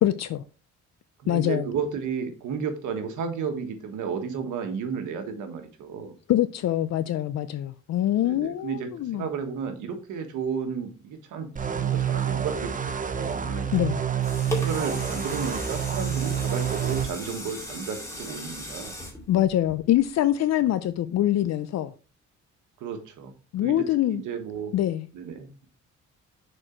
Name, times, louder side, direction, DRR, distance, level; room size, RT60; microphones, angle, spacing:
voice 1, 0.0-0.4 1.3-1.7 6.3-9.3 13.7-14.0 19.3-21.9 23.5-24.2 24.7-25.1, left 13 dB, 60° left, 0.5 m, -24 dB
voice 2, 1.2-6.2 8.1-12.7 13.0-13.7 14.5-18.9 22.8-23.3 23.6-23.9 24.1-24.7 25.1-25.5, right 6 dB, 85° right, 1.5 m, -33 dB
sound 1, 11.6-17.1, right 8 dB, 25° right, 0.8 m, -28 dB
sound 2, 14.2-20.2 20.8-20.9, left 1 dB, 10° left, 2.4 m, -37 dB
6.5 x 4.4 x 4.4 m
cardioid pair, 90°, 30 cm